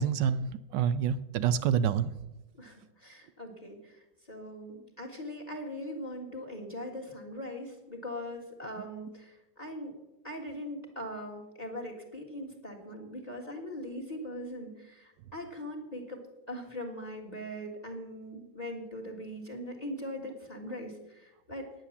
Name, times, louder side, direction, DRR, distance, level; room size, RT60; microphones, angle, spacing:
voice 1, 0.0-2.1, right 8 dB, 75° right, 14 dB, 1.1 m, -27 dB
voice 2, 2.6-9.9 10.2-21.7, equal, 20° left, 3 dB, 1.7 m, -41 dB
9.8 x 9.1 x 7.1 m, 0.95 s
omnidirectional pair, 2.2 m